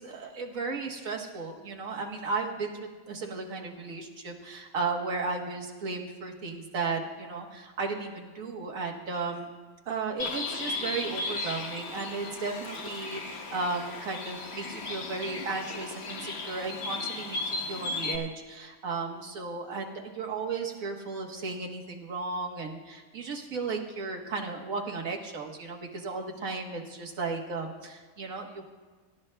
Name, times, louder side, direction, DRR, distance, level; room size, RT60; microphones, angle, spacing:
voice 1, 0.0-9.5 9.9-28.6, right 4 dB, 80° right, 1 dB, 1.7 m, -35 dB
Bird, 10.2-18.2, left 3 dB, 55° left, 1.2 m, -36 dB
26.0 x 12.0 x 2.2 m, 1.4 s
omnidirectional pair, 1.4 m